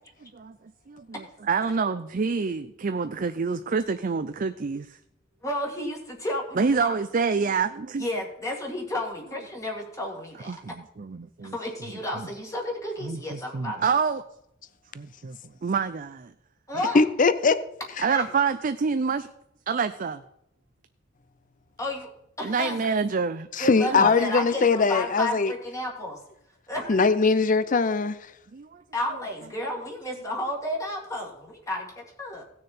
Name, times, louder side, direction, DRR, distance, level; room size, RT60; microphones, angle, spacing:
voice 1, 0.2-0.5 0.9-1.0 1.5-5.0 6.6-8.1 10.5-11.6 13.0-14.2 14.9-15.4 15.6-16.3 18.0-19.3 19.7-20.2 22.4-23.5 23.8-24.1 28.5-28.8, right 5 dB, 45° right, 10 dB, 0.5 m, -27 dB
voice 2, 5.4-6.9 8.0-10.5 11.5-13.8 16.7-17.0 18.1-18.3 21.8-22.1 22.4-22.8 23.6-26.2 26.7-27.1 28.9-32.4, left 1 dB, 15° left, -1 dB, 2.0 m, -32 dB
voice 3, 16.9-17.6 18.0-18.1 23.5-25.5 26.9-28.2, left 4 dB, 40° left, 14 dB, 0.6 m, -21 dB
17.0 x 6.5 x 4.3 m, 0.78 s
head